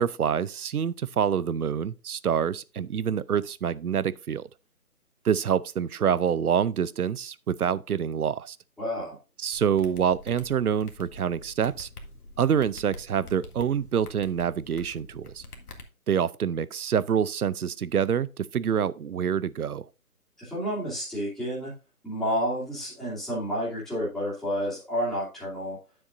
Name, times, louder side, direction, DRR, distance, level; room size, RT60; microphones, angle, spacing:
voice 1, 0.0-4.5 5.2-8.6 9.4-11.9 12.4-15.4 16.1-19.9, right 8 dB, 70° right, 0.6 m, -26 dB
voice 2, 8.8-9.2 20.4-21.7 22.0-25.8, equal, ahead, 2.5 m, -30 dB
sound 1, 9.5-15.8, left 1 dB, 70° left, 1.7 m, -46 dB
9.8 x 7.1 x 2.5 m
figure-of-eight pair, 150°, 46 cm